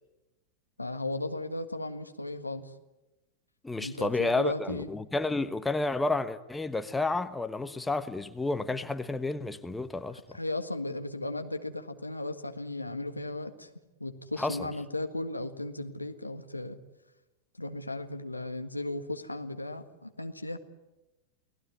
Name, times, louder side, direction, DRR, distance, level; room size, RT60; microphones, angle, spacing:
voice 1, 0.8-2.7 3.8-4.9 10.3-13.7 14.0-16.8 17.6-20.6, left 2 dB, 85° left, 7 dB, 1.8 m, -36 dB
voice 2, 3.6-10.2 14.4-14.7, left 3 dB, 10° left, 12 dB, 1.2 m, -31 dB
29.5 x 19.0 x 9.6 m, 1.0 s
figure-of-eight pair, 90°, 0 cm